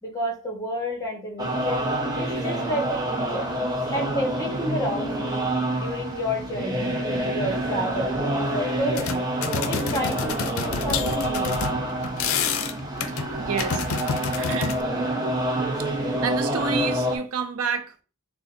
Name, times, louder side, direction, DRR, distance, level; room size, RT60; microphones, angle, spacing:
voice 1, 0.0-1.8 2.2-3.5 3.9-5.5 5.8-9.3 9.7-11.5, equal, 15° left, 1.3 m, -30 dB
sound 1, 1.4-17.2, right 1 dB, 20° right, 0.8 m, -27 dB
sound 2, 8.5-8.6 8.8-14.8, left 7 dB, 70° left, 0.4 m, -29 dB
voice 2, 13.4-13.8 14.4-14.8 16.2-18.0, right 5 dB, 80° right, 0.6 m, -28 dB
6.7 x 2.3 x 2.6 m
head